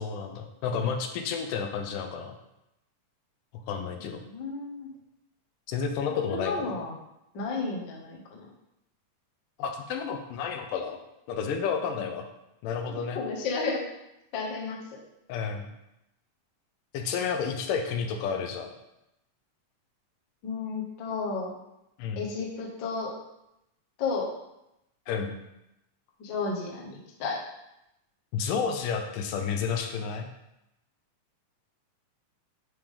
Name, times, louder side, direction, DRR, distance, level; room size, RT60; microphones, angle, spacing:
voice 1, 0.0-2.4 3.7-4.2 5.7-6.7 9.6-11.0 11.3-12.3 12.6-13.2 15.3-15.7 16.9-18.7 22.0-22.3 25.1-25.3 28.3-30.3, left 6 dB, 85° left, 6 dB, 2.2 m, -31 dB
voice 2, 4.3-4.9 6.1-6.9 7.3-8.5 12.9-13.8 14.3-14.8 20.4-21.5 22.1-23.1 24.0-24.3 26.2-27.4, left 4 dB, 60° left, -2 dB, 1.2 m, -32 dB
9.7 x 3.5 x 3.7 m, 0.87 s
omnidirectional pair, 3.7 m